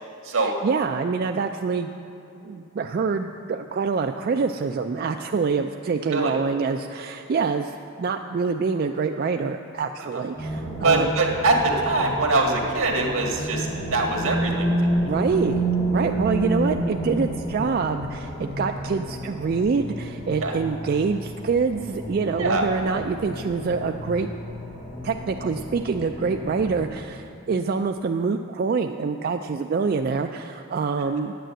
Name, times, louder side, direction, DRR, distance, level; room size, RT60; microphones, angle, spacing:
voice 1, 0.3-1.9 2.4-11.1 15.0-24.3 25.0-31.4, right 5 dB, 45° right, 5 dB, 0.3 m, -26 dB
sound 1, 10.3-26.9, right 1 dB, 35° left, 2.1 m, -30 dB
voice 2, 10.8-14.7 20.4-20.5 22.4-22.7, right 2 dB, 80° right, 1 dB, 1.7 m, -23 dB
9.1 x 9.0 x 7.6 m, 2.8 s
head